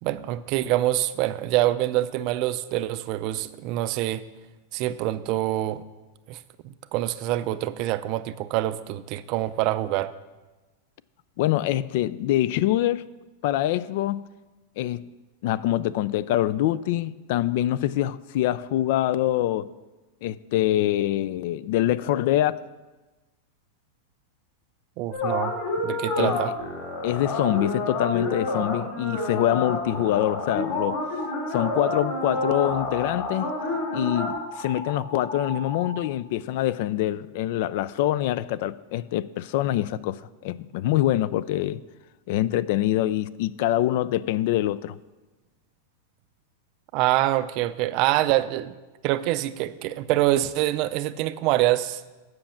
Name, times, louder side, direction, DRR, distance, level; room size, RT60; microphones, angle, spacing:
voice 1, 0.0-4.3 4.7-5.8 6.3-6.4 6.6-10.1 25.0-25.5 25.8-26.5 46.9-48.8 49.0-52.0, right 15 dB, 45° right, 0.4 m, -25 dB
voice 2, 11.4-13.0 13.4-14.2 14.8-15.1 15.4-19.7 20.2-22.6 26.2-26.4 27.0-31.0 31.5-33.5 33.9-41.8 42.3-45.0, left 13 dB, 55° left, 0.3 m, -25 dB
sound 1, 25.1-34.3, left 2 dB, 40° left, 2.7 m, -29 dB
sound 2, 29.9-30.8 31.2-31.9 32.2-32.8 33.2-35.9, left 2 dB, 15° left, 1.2 m, -37 dB
7.7 x 5.9 x 7.2 m
supercardioid pair, 145°, 0 cm